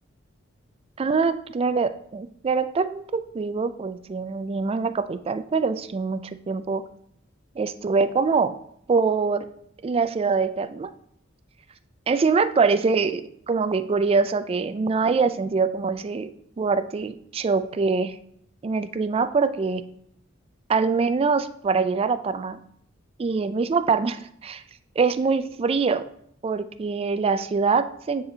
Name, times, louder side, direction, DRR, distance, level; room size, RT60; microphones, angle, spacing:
voice 1, 1.0-6.2 6.5-6.8 7.6-8.5 8.9-9.4 9.8-10.9 12.1-13.2 13.5-16.3 16.6-18.2 18.6-19.8 20.7-22.6 23.2-24.6 25.0-26.0 26.4-28.2, right 4 dB, 30° right, 12 dB, 0.3 m, -24 dB
9.4 x 4.1 x 2.7 m, 0.70 s
head